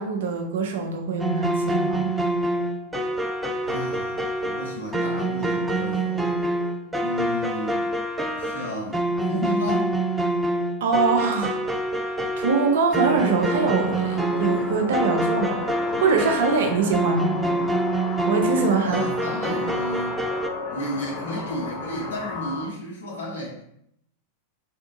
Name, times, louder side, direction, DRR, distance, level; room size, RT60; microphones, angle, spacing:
voice 1, 0.0-2.1 10.8-11.6 11.9-15.6 16.0-17.4 18.3-19.0 19.5-19.6, right 4 dB, 60° right, 2 dB, 0.6 m, -23 dB
sound 1, 1.2-20.5, right 1 dB, 10° right, 0.4 m, -26 dB
voice 2, 3.6-6.5 7.0-7.9 8.3-9.9 18.8-20.2 20.7-23.6, left 1 dB, 65° left, -3 dB, 1.2 m, -32 dB
sound 2, 12.9-22.7, left 3 dB, 25° left, 1.3 m, -34 dB
3.5 x 2.7 x 3.7 m, 0.72 s
figure-of-eight pair, 90°, 0 cm